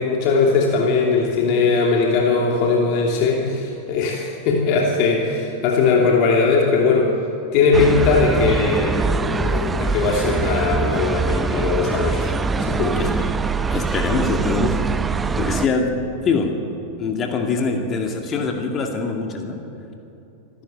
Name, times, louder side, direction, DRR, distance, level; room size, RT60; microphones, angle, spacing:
voice 1, 0.0-7.1 7.5-12.3 12.6-13.1, left 4 dB, 45° left, -1 dB, 2.9 m, -19 dB
sound 1, 7.7-15.7, right 4 dB, 15° right, 0.8 m, -23 dB
voice 2, 13.0-13.3 13.7-14.9 15.3-16.6 17.0-19.6, left 4 dB, 25° left, 3 dB, 2.3 m, -23 dB
26.0 x 13.0 x 9.0 m, 3.0 s
figure-of-eight pair, 90°, 0 cm